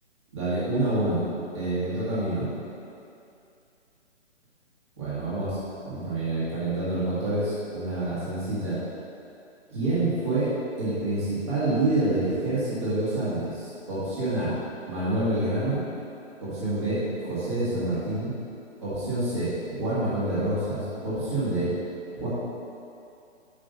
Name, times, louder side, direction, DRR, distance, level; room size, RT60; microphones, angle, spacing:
voice 1, 0.3-1.2 1.5-2.5 5.0-5.6 5.8-8.8 9.7-10.5 10.8-14.5 14.9-15.8 16.4-18.3 18.8-21.7 22.1-22.3, right 2 dB, 25° right, -12 dB, 1.7 m, -27 dB
5.8 x 5.2 x 5.1 m, 2.6 s
hypercardioid pair, 175°, 36 cm